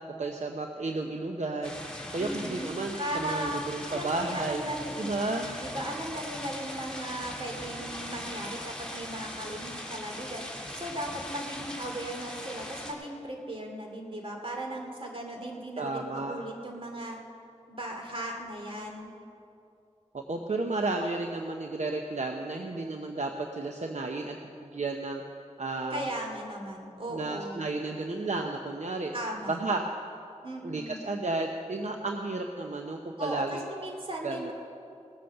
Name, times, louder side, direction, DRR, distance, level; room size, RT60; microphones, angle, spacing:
voice 1, 0.2-1.8 2.1-4.6 5.0-5.5 15.8-16.4 20.1-25.2 25.6-26.1 27.1-29.1 29.5-29.8 30.6-33.7 34.2-34.5, right 3 dB, 75° right, 3 dB, 0.8 m, -32 dB
sound 1, 1.6-12.9, left 1 dB, 5° left, 2.6 m, -40 dB
voice 2, 2.2-2.7 3.0-10.5 10.7-17.2 17.7-19.1 25.9-27.6 29.1-29.6 30.4-31.0 33.2-34.5, right 1 dB, 50° right, 1 dB, 2.5 m, -37 dB
18.5 x 7.8 x 6.8 m, 2.6 s
wide cardioid pair, 45°, 12 cm